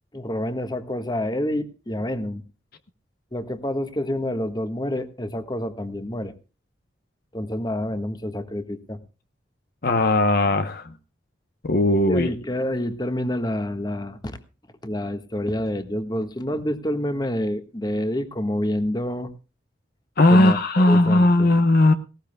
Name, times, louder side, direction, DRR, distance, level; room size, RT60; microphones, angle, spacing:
voice 1, 0.1-2.4 3.3-6.3 7.3-9.0 12.0-14.4 14.8-19.3 20.3-21.5, left 1 dB, 20° left, 1.5 m, -28 dB
voice 2, 9.8-10.8 11.6-12.3 20.2-21.9, left 1 dB, 55° left, 0.9 m, -17 dB
19.0 x 17.5 x 2.3 m
head